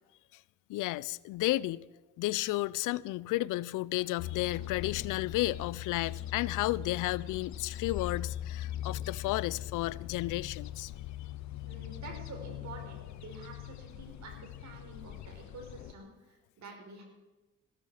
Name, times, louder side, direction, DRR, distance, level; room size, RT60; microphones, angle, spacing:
voice 1, 0.7-1.9 2.2-10.9, left 17 dB, 85° left, 0.5 m, -32 dB
sound 1, 4.2-15.9, left 12 dB, 65° left, 0.9 m, -41 dB
voice 2, 11.7-17.0, right 3 dB, 65° right, 4.9 m, -48 dB
16.0 x 13.5 x 4.9 m
cardioid pair, 90°, 30 cm